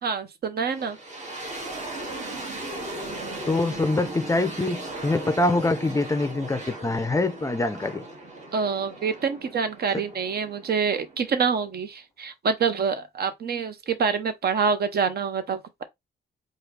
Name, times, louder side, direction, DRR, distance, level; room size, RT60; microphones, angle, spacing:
voice 1, 0.0-1.0 8.5-15.8, right 5 dB, 55° right, 0.9 m, -26 dB
sound 1, 0.7-11.6, right 2 dB, 35° right, 1.8 m, -37 dB
voice 2, 3.5-8.0, left 2 dB, 15° left, 0.5 m, -24 dB
4.8 x 2.4 x 3.2 m
cardioid pair, 90°, 20 cm